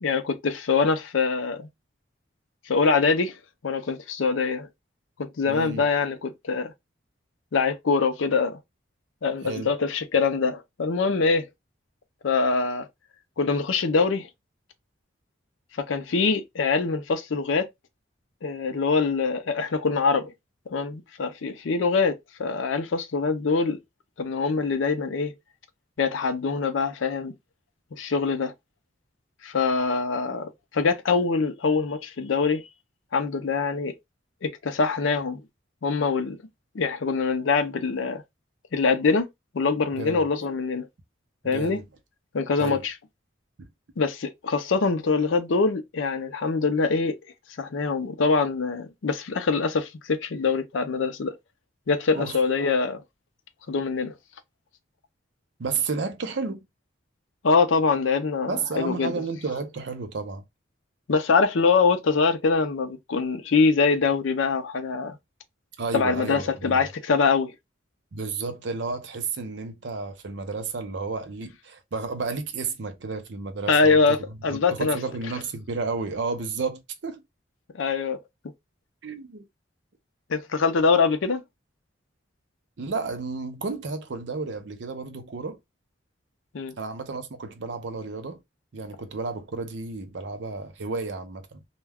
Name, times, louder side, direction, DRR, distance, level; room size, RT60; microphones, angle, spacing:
voice 1, 0.0-1.7 2.7-3.4 3.6-4.7 5.2-6.7 7.5-8.6 9.2-11.5 12.2-12.9 13.4-14.3 15.9-17.7 18.4-20.3 20.7-22.1 22.4-23.8 24.2-25.3 26.0-27.3 28.0-28.5 29.4-32.6 33.1-33.9 34.4-35.4 35.8-36.4 36.7-38.2 38.7-39.3 39.5-40.9 41.4-41.8 42.3-42.9 44.0-47.1 47.6-51.3 51.9-53.0 53.7-54.1 57.4-59.1 61.1-65.2 65.9-67.5 73.7-74.2 74.4-75.0 77.7-78.2 80.3-81.4 86.5-86.7, left 4 dB, 75° left, 0.5 m, -24 dB
voice 2, 5.5-5.9 9.4-9.7 39.9-40.2 41.4-41.8 42.6-42.8 43.6-43.7 52.1-52.4 55.6-56.7 58.5-60.4 65.8-66.8 68.1-74.2 74.5-77.2 79.0-79.5 82.8-85.6 86.8-88.4 88.7-91.6, right 4 dB, 65° right, 0.5 m, -32 dB
2.2 x 2.2 x 3.3 m
head